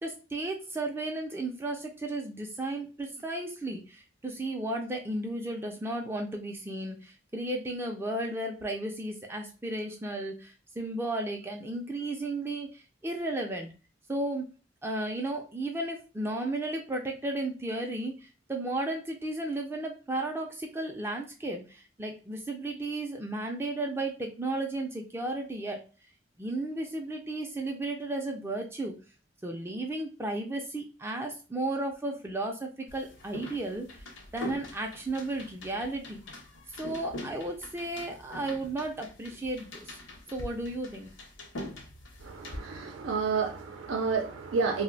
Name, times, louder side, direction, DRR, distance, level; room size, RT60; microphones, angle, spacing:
voice 1, 0.0-13.7 14.1-14.5 14.8-25.8 26.4-29.0 29.4-34.0 34.3-36.2 36.7-40.0 40.3-41.1, right 2 dB, 10° right, 0.3 m, -34 dB
sound 1, 32.9-42.6, left 1 dB, 75° left, 0.8 m, -43 dB
voice 2, 42.2-44.8, right 5 dB, 90° right, 0.5 m, -30 dB
2.5 x 2.0 x 3.8 m
head